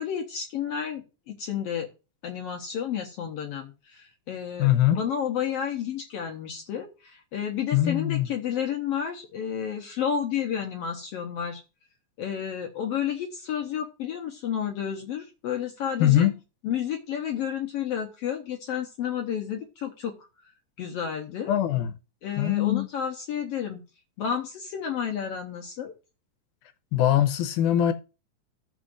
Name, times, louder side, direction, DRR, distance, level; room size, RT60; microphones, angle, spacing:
voice 1, 0.0-1.9 2.2-11.6 12.2-16.3 16.6-20.1 20.8-21.5 22.2-23.8 24.2-25.9, left 8 dB, 70° left, 1.6 m, -31 dB
voice 2, 4.6-5.0 7.7-8.3 16.0-16.3 21.5-21.9 22.4-22.9 26.9-27.9, left 12 dB, 85° left, 2.2 m, -22 dB
15.0 x 6.1 x 2.5 m
omnidirectional pair, 3.5 m